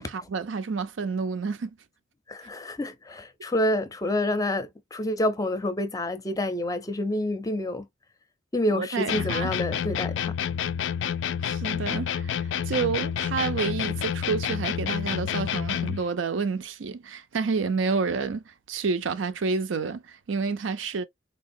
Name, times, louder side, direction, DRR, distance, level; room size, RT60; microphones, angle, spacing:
voice 1, 0.0-1.7 8.7-9.5 11.4-21.0, right 5 dB, 90° right, 0.5 m, -29 dB
voice 2, 2.3-7.9 8.5-10.3, left 1 dB, 20° left, 0.5 m, -28 dB
sound 1, 9.1-16.1, left 8 dB, 75° left, 0.3 m, -29 dB
4.0 x 2.8 x 2.5 m
head